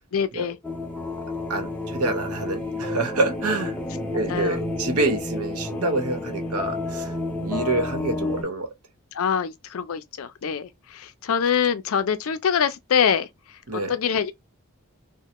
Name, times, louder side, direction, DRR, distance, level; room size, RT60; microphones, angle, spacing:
voice 1, 0.1-0.6 4.3-4.6 9.1-13.3 13.7-14.3, left 7 dB, 70° left, 0.4 m, -24 dB
sound 1, 0.6-8.4, left 2 dB, 5° left, 0.5 m, -30 dB
voice 2, 1.5-3.8 4.1-7.1 7.4-8.7 13.7-13.9, right 2 dB, 85° right, 0.9 m, -27 dB
3.1 x 2.1 x 2.9 m
head